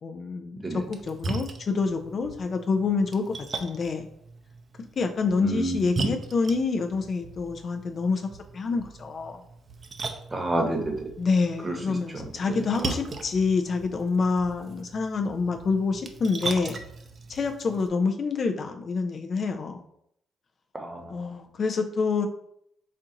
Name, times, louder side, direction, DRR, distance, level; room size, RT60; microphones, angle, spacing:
voice 1, 0.0-3.3 3.6-4.1 5.0-9.4 11.2-16.8 17.3-19.8 21.1-22.3, left 4 dB, 50° left, 5 dB, 0.4 m, -27 dB
Splash splatter, 0.8-17.9, right 4 dB, 45° right, 0.5 m, -38 dB
voice 2, 5.4-5.8 10.3-11.1 11.6-12.6 20.7-21.2, right 1 dB, 20° right, 2 dB, 1.0 m, -30 dB
4.3 x 2.6 x 3.7 m, 0.73 s
cardioid pair, 90°, 0 cm